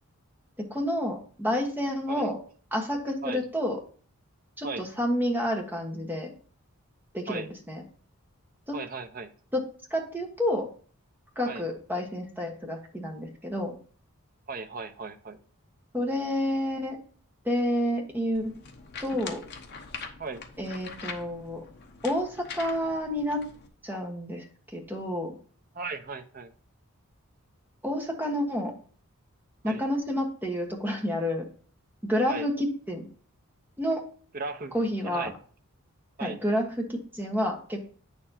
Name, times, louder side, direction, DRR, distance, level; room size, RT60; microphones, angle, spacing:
voice 1, 0.6-2.4 2.7-3.8 4.6-6.3 7.1-7.8 8.7-8.8 9.5-9.6 9.9-10.7 11.3-13.8 15.9-17.0 17.4-18.5 19.0-19.4 20.6-21.6 22.0-23.4 23.8-24.4 24.7-25.3 27.8-28.7 29.6-31.4 32.0-33.0 33.8-34.0 34.7-35.3 36.2-37.8, equal, 10° right, 1 dB, 1.3 m, -29 dB
voice 2, 8.7-9.3 11.5-11.6 14.5-15.4 20.2-20.4 25.7-26.5 29.6-29.8 32.3-32.5 34.3-34.7 35.0-35.3 36.2-36.4, right 4 dB, 40° right, 7 dB, 0.8 m, -36 dB
sound 1, 18.3-23.7, left 5 dB, 50° left, 0.9 m, -43 dB
8.6 x 6.8 x 2.8 m, 0.43 s
head